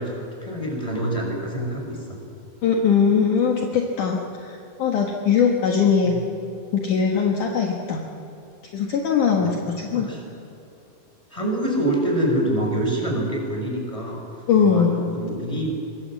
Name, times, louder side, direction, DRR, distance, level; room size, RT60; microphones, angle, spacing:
voice 1, 0.0-2.2 6.1-6.2 9.4-9.6 9.9-10.2 11.3-14.2 14.6-15.7, right 1 dB, 10° left, 0 dB, 5.8 m, -26 dB
voice 2, 2.6-6.2 6.7-8.0 8.7-10.1 14.5-15.0, left 6 dB, 60° left, 0 dB, 2.8 m, -21 dB
26.0 x 21.0 x 7.6 m, 2.7 s
omnidirectional pair, 4.3 m